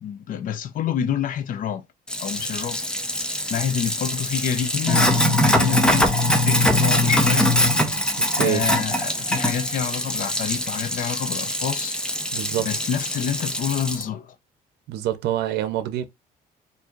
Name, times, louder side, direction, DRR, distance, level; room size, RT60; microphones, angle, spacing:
voice 1, 0.0-1.8 2.2-2.8 3.5-7.6 8.4-12.0 12.6-14.4, left 8 dB, 55° left, 0.6 m, -28 dB
Sink (filling or washing), 2.1-14.0, left 1 dB, 5° left, 0.7 m, -23 dB
voice 2, 8.2-8.6 12.3-12.7 14.9-16.1, right 12 dB, 75° right, 0.7 m, -26 dB
4.3 x 2.8 x 2.4 m
cardioid pair, 110°, 17 cm